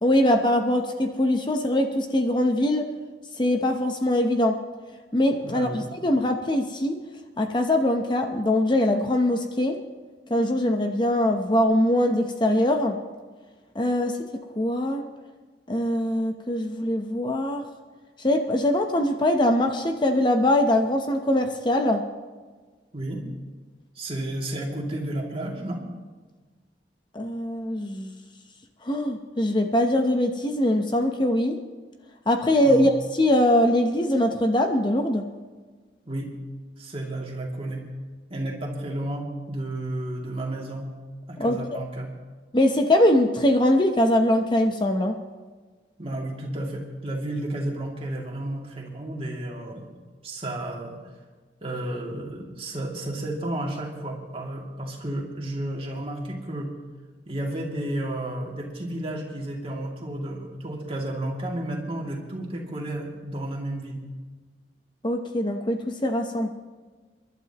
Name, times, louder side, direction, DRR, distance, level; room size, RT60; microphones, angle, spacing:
voice 1, 0.0-2.9 3.4-4.6 5.1-7.0 7.4-9.8 10.3-13.0 13.7-14.2 14.6-15.0 15.7-17.6 18.2-22.0 27.1-28.1 28.8-31.6 32.3-35.2 41.4-41.8 42.5-45.2 65.0-66.5, left 1 dB, 25° left, 4 dB, 0.8 m, -22 dB
voice 2, 5.4-5.9 22.9-23.2 23.9-25.9 32.6-32.9 36.1-36.3 36.8-37.8 38.3-40.9 41.3-42.1 46.0-49.9 50.2-51.0 51.6-56.7 57.2-64.1, right 1 dB, 35° right, -1 dB, 2.5 m, -32 dB
29.5 x 12.0 x 3.0 m, 1.4 s
head